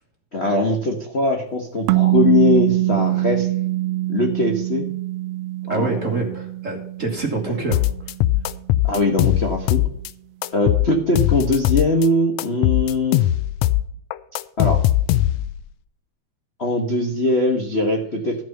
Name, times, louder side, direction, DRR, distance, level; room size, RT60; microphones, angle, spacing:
voice 1, 0.3-3.5 4.1-4.8 5.7-5.9 7.5-7.6 8.8-9.8 10.5-13.3 14.6-14.8 16.6-18.4, left 2 dB, 60° left, 1 dB, 0.6 m, -21 dB
sound 1, 1.9-8.4, right 17 dB, 85° right, 1.4 m, -23 dB
voice 2, 5.7-8.1, right 3 dB, 35° right, 2 dB, 1.4 m, -26 dB
sound 2, 7.7-10.1 10.4-12.1 12.4-15.6, left 14 dB, 80° left, 1.5 m, -20 dB
13.5 x 6.2 x 5.6 m, 0.69 s
omnidirectional pair, 3.3 m